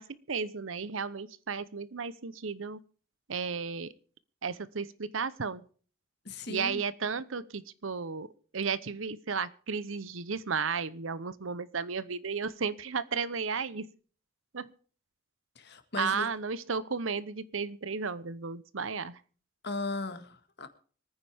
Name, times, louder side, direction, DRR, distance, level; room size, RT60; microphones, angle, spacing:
voice 1, 0.0-2.8 3.3-3.9 4.4-5.6 6.5-13.9 14.5-14.7 16.0-19.2, right 5 dB, 75° right, 16 dB, 0.8 m, -34 dB
voice 2, 6.2-6.8 15.6-16.3 19.6-20.7, left 3 dB, 55° left, 9 dB, 1.8 m, -37 dB
25.5 x 9.7 x 3.5 m, 0.42 s
head